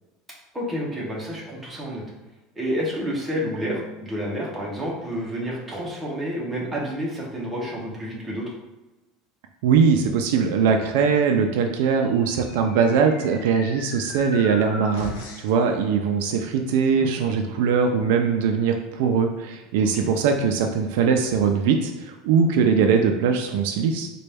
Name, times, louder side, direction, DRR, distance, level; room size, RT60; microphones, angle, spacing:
voice 1, 0.5-2.0 2.5-8.5 16.9-17.4 19.9-20.1, equal, 5° right, -5 dB, 0.7 m, -29 dB
voice 2, 9.6-24.1, right 6 dB, 65° right, 4 dB, 0.4 m, -21 dB
sound 1, 12.0-15.6, left 2 dB, 75° left, 0.8 m, -38 dB
4.1 x 2.2 x 3.3 m, 1.1 s
cardioid pair, 180°, 0 cm